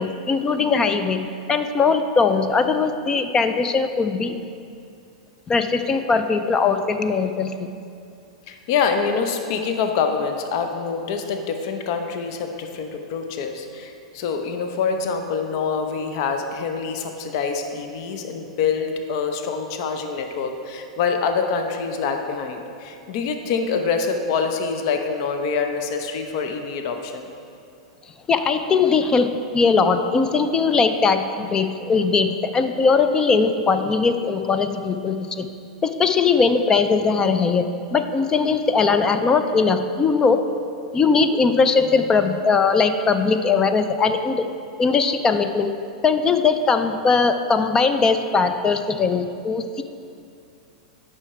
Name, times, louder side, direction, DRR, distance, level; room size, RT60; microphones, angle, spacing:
voice 1, 0.0-4.4 5.5-7.7 28.3-35.5 35.8-40.4 40.9-44.5 44.8-45.7 46.0-49.8, left 4 dB, 20° left, 9 dB, 0.4 m, -20 dB
voice 2, 8.5-27.3, left 5 dB, 50° left, 5 dB, 0.7 m, -25 dB
9.7 x 5.7 x 4.7 m, 2.5 s
figure-of-eight pair, 95°, 3 cm